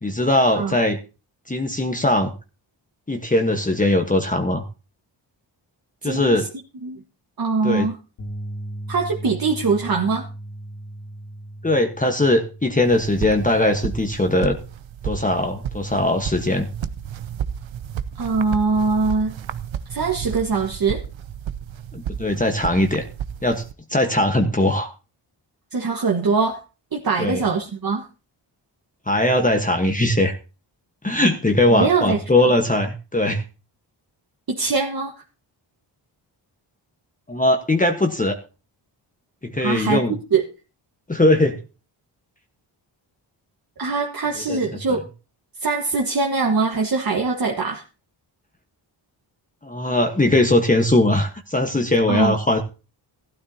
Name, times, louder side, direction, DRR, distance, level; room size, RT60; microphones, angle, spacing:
voice 1, 0.0-1.0 1.5-2.3 3.1-4.7 6.0-6.4 7.6-7.9 11.6-14.6 15.0-16.7 21.9-23.0 23.4-23.6 23.9-24.9 27.2-27.4 29.1-30.3 31.0-33.4 37.3-38.4 39.4-40.1 41.1-41.6 44.5-44.6 49.6-52.6, left 1 dB, 15° left, 4 dB, 1.3 m, -20 dB
voice 2, 6.0-6.5 6.8-7.0 7.4-8.0 8.9-10.3 18.2-19.3 19.9-21.0 25.7-26.6 26.9-28.0 31.7-32.2 34.5-35.1 39.6-40.4 43.8-45.0 45.6-47.8 52.1-52.4, right 4 dB, 50° right, 1 dB, 1.6 m, -22 dB
sound 1, 8.2-14.4, right 1 dB, 80° left, 3.0 m, -37 dB
sound 2, 12.8-23.7, right 9 dB, 75° right, 0.8 m, -32 dB
15.0 x 12.5 x 2.8 m, 0.32 s
cardioid pair, 85°, 46 cm